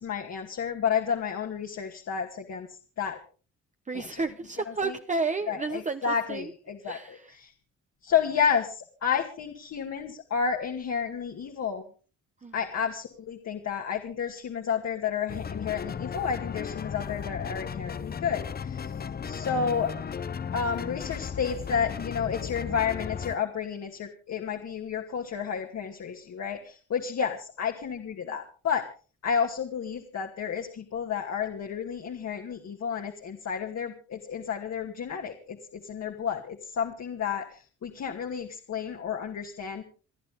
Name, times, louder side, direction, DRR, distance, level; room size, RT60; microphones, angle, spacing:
voice 1, 0.0-3.2 3.9-4.1 4.8-4.9 5.5-7.5 8.0-11.8 12.5-18.9 19.2-19.9 20.5-28.8 29.2-39.8, left 7 dB, 60° left, 2 dB, 2.4 m, -31 dB
voice 2, 3.8-6.5 6.8-7.4 12.4-12.6, right 4 dB, 25° right, 7 dB, 1.0 m, -32 dB
sound 1, 15.3-23.4, left 6 dB, 30° left, 0.8 m, -35 dB
29.5 x 9.9 x 3.7 m, 0.38 s
cardioid pair, 90°, 30 cm